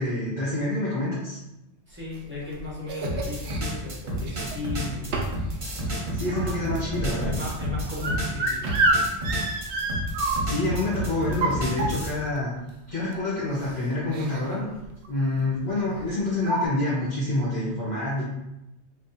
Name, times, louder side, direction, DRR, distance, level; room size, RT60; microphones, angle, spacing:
voice 1, 0.0-1.4 6.1-7.4 10.4-12.5 12.9-14.7 15.1-18.3, left 2 dB, 45° left, -10 dB, 1.4 m, -27 dB
voice 2, 1.9-5.3 5.6-6.5 7.2-8.8, left 3 dB, 10° right, -7 dB, 1.0 m, -36 dB
sound 1, 2.1-3.6 4.2-4.7 5.1-5.5 5.8-10.7 11.2-12.3 13.1-13.2 13.5-13.7 14.1-14.6 14.8-15.1 16.0-16.1 16.4-16.7, right 2 dB, 90° right, 0.9 m, -28 dB
sound 2, 3.0-12.1, equal, 45° right, 1.0 m, -31 dB
3.5 x 2.3 x 4.1 m, 0.91 s
omnidirectional pair, 1.1 m